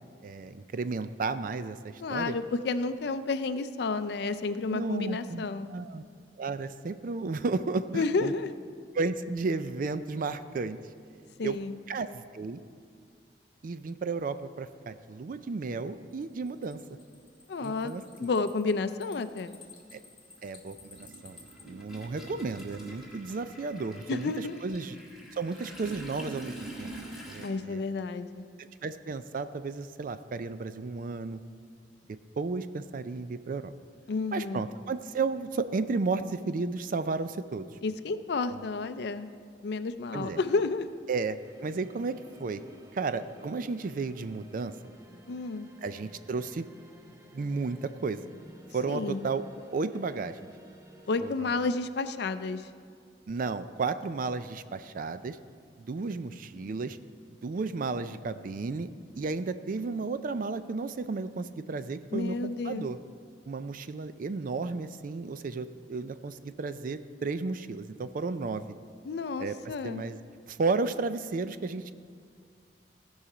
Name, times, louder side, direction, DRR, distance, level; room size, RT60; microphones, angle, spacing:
voice 1, 0.2-2.3 4.7-6.0 6.4-8.3 8.9-10.8 11.4-11.6 11.9-12.6 13.6-16.8 17.6-18.3 19.9-20.0 20.4-25.0 25.3-26.9 27.3-27.8 28.6-31.4 32.4-33.7 34.3-37.7 38.5-38.6 40.1-40.4 41.1-42.6 42.9-44.8 45.8-46.7 47.3-48.2 48.7-49.4 49.7-50.4 51.2-51.5 53.3-55.4 55.8-57.0 57.4-58.9 59.1-63.0 63.5-68.7 69.4-69.5 69.8-70.2 70.5-71.9, right 4 dB, 50° right, 12 dB, 0.4 m, -33 dB
voice 2, 2.0-5.7 7.9-8.5 11.4-11.7 17.5-17.9 18.2-19.6 24.1-24.6 27.4-28.4 34.1-34.6 37.8-39.3 39.6-40.9 45.3-45.7 48.9-49.2 51.1-52.6 62.1-62.9 69.0-70.0, left 3 dB, 65° left, 11 dB, 0.4 m, -31 dB
sound 1, 16.1-21.6, left 4 dB, 30° left, 1.6 m, -54 dB
Toilet flush, 17.0-17.1 18.4-18.5 18.9-27.5, right 1 dB, 5° right, 2.6 m, -45 dB
sound 2, 41.0-51.3, equal, 20° right, 0.8 m, -53 dB
16.0 x 5.6 x 4.9 m, 2.2 s
head